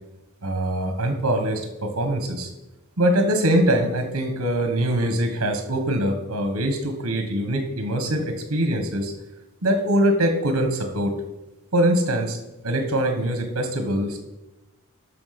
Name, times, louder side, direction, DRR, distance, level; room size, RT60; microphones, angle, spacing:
voice 1, 0.4-2.5 3.0-9.1 9.6-11.1 11.7-12.4 12.6-14.2, right 1 dB, 75° right, 6 dB, 1.4 m, -23 dB
10.0 x 6.4 x 6.0 m, 1.0 s
head